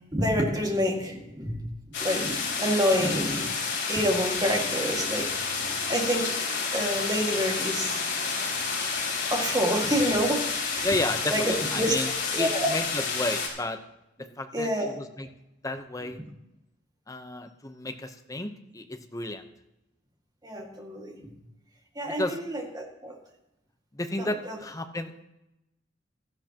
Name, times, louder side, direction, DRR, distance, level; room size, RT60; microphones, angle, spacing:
voice 1, 0.0-3.5 3.9-6.3 6.7-8.0 9.3-10.9 11.3-11.9 12.3-12.7 14.5-14.9 20.4-21.2 22.0-23.2 24.2-24.6, equal, 20° right, 1 dB, 1.9 m, -28 dB
sound 1, 1.9-13.5, left 5 dB, 80° left, 3.5 m, -30 dB
voice 2, 10.8-12.1 12.4-13.8 14.2-14.7 15.0-15.3 15.6-16.2 17.1-19.5 22.2-22.4 23.9-25.2, left 1 dB, 15° left, 7 dB, 0.8 m, -32 dB
16.5 x 12.5 x 2.9 m, 0.90 s
head